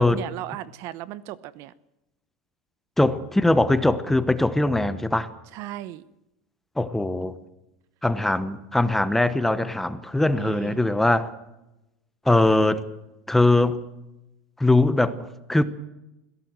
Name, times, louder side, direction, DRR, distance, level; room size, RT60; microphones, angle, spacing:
voice 1, 0.0-1.7 5.5-6.0 10.4-10.8, right 14 dB, 50° right, 0.9 m, -36 dB
voice 2, 3.0-5.3 6.8-7.4 8.0-11.3 12.2-12.8 13.3-13.8 14.6-15.6, left 2 dB, 5° left, 1.1 m, -21 dB
22.0 x 16.5 x 7.7 m
supercardioid pair, 145°, 6 cm